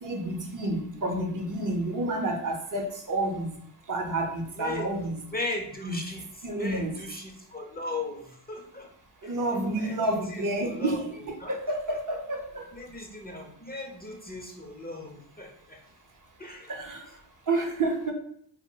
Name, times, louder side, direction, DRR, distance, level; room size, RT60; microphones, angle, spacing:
voice 1, 0.0-3.5 3.9-5.2 5.8-6.0 6.4-6.9 9.2-12.6 16.7-17.0 17.5-18.1, right 2 dB, 40° right, 3 dB, 0.6 m, -29 dB
voice 2, 4.6-8.9 9.2-9.4 9.8-11.6 12.7-15.8 16.4-16.7, left 2 dB, 20° left, 2 dB, 0.5 m, -38 dB
2.1 x 2.0 x 3.7 m, 0.64 s
supercardioid pair, 40°, 49 cm